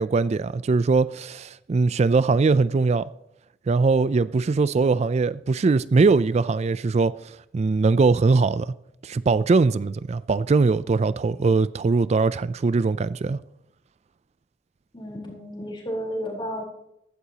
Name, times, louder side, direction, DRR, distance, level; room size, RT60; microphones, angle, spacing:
voice 1, 0.0-3.1 3.7-8.7 9.0-13.4, right 4 dB, 40° right, 0.3 m, -21 dB
voice 2, 14.9-16.6, equal, 30° left, 3.8 m, -32 dB
15.0 x 13.0 x 2.9 m
head